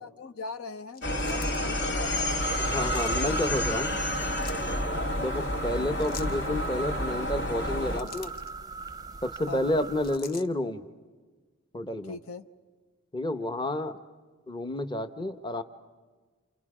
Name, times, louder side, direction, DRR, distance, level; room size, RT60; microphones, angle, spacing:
voice 1, 0.0-2.7 4.9-5.2 9.5-9.8 12.0-12.5, left 4 dB, 80° left, 11 dB, 0.8 m, -40 dB
sound 1, 0.9-1.7 2.8-3.2 4.2-4.7 6.0-6.4 7.6-8.5 10.0-10.5, left 5 dB, 45° left, 1.0 m, -44 dB
sound 2, 1.0-8.0, left 1 dB, 60° left, 2.0 m, -30 dB
sound 3, 2.4-10.2, right 4 dB, 20° right, 0.6 m, -38 dB
voice 2, 2.6-3.9 5.2-8.3 9.2-10.8 11.7-12.2 13.1-14.0 14.5-15.6, left 1 dB, 20° left, 9 dB, 0.8 m, -30 dB
29.0 x 28.0 x 4.9 m, 1.4 s
head